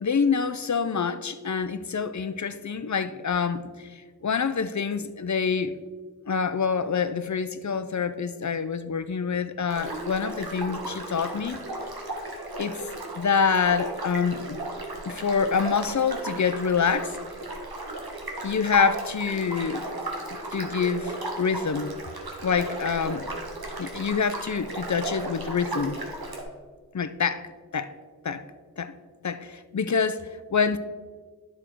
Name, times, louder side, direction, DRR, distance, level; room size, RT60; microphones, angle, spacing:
voice 1, 0.0-5.7 6.3-11.6 12.6-12.8 13.2-14.6 15.0-17.1 18.4-19.8 20.5-22.0 22.4-23.3 23.8-26.0 26.9-27.4 27.7-27.9 28.2-28.4 28.8-28.9 29.2-30.8, left 6 dB, 50° left, 12 dB, 0.6 m, -26 dB
sound 1, 9.7-26.4, right 2 dB, 80° right, 1.5 m, -35 dB
9.8 x 6.5 x 4.5 m, 1.5 s
wide cardioid pair, 50°, 36 cm